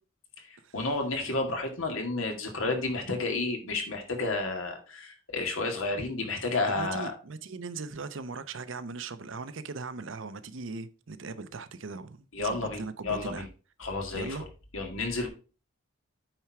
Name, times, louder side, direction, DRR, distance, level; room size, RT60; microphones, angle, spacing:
voice 1, 0.4-7.1 12.3-13.4 13.8-14.4 14.7-15.3, left 3 dB, 80° left, 2.1 m, -31 dB
voice 2, 6.7-13.5 14.1-14.4, right 4 dB, 65° right, 0.7 m, -39 dB
9.1 x 4.5 x 4.7 m
head